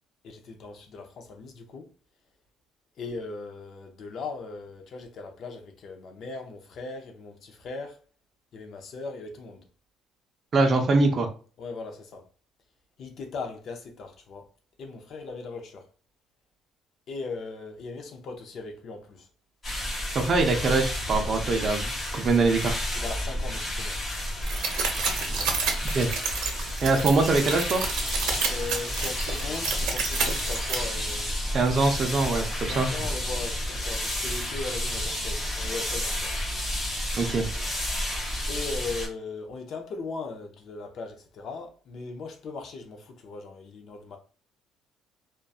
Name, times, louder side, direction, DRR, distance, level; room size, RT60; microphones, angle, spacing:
voice 1, 0.2-1.9 3.0-8.0 8.5-9.7 11.6-12.3 13.0-14.5 14.8-15.9 17.1-19.3 22.9-24.0 25.3-25.7 28.5-31.3 32.7-36.4 38.5-44.2, left 4 dB, 45° left, 0.5 m, -38 dB
voice 2, 10.5-11.3 20.1-22.8 25.9-26.1 26.8-27.8 31.5-32.9 37.1-37.5, right 3 dB, 35° right, 0.5 m, -23 dB
sound 1, 19.6-39.1, left 1 dB, 25° left, 1.0 m, -31 dB
sound 2, 24.4-30.7, right 5 dB, 80° right, 0.6 m, -30 dB
sound 3, 26.9-27.6 27.9-28.7 29.0-29.7 30.2-31.5, right 1 dB, 5° right, 1.0 m, -40 dB
2.6 x 2.2 x 2.3 m
cardioid pair, 160°, 0 cm